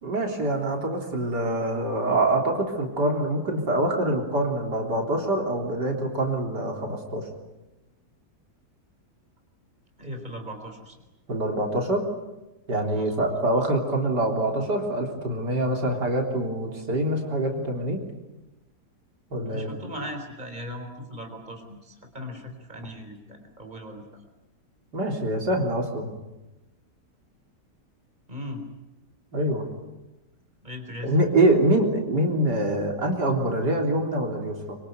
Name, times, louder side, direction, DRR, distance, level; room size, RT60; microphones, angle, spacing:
voice 1, 0.0-7.2 11.3-12.0 12.7-18.0 19.3-19.7 24.9-26.1 29.3-29.6 31.0-34.8, right 1 dB, 80° right, 1 dB, 4.3 m, -25 dB
voice 2, 10.0-11.0 12.9-13.3 19.5-24.2 28.3-28.6 30.6-31.4, equal, 25° right, 4 dB, 4.5 m, -38 dB
25.0 x 25.0 x 9.4 m, 1.0 s
omnidirectional pair, 1.8 m